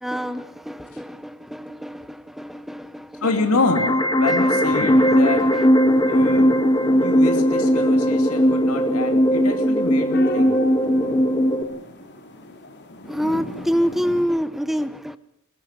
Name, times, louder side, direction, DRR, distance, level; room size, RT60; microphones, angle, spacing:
voice 1, 0.0-3.3 5.0-5.6 13.0-15.2, equal, ahead, 0.8 m, -27 dB
voice 2, 3.2-5.5 6.1-6.5 7.0-10.6, left 3 dB, 75° left, 2.6 m, -26 dB
sound 1, 3.6-11.6, equal, 20° left, 1.5 m, -18 dB
sound 2, 4.7-14.2, left 1 dB, 50° left, 3.2 m, -36 dB
21.5 x 20.5 x 7.4 m
head